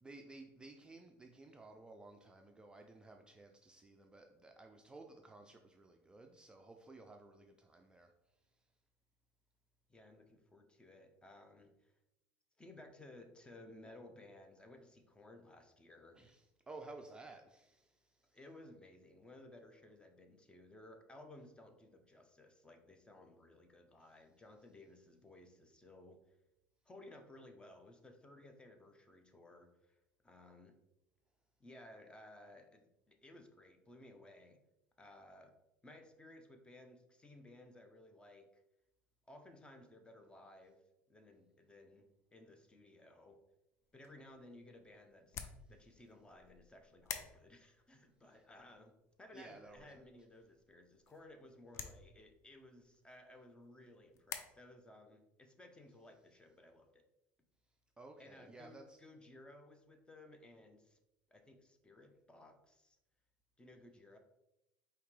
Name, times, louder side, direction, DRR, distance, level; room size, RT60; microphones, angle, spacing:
voice 1, 0.0-8.1 16.1-18.4 49.3-49.9 58.0-59.0, right 2 dB, 15° right, 3 dB, 0.4 m, -55 dB
voice 2, 9.9-11.9 12.6-16.2 18.3-26.4 26.9-30.0 30.2-30.8 31.6-34.6 35.0-35.5 35.8-38.6 39.3-40.8 41.1-43.4 43.9-48.9 49.2-57.0 58.2-61.0 61.3-63.0 63.6-64.2, left 1 dB, 15° left, 5 dB, 0.7 m, -58 dB
sound 1, 43.8-54.4, left 7 dB, 50° left, 0.5 m, -52 dB
4.9 x 2.9 x 3.2 m, 0.90 s
supercardioid pair, 95°, 6 cm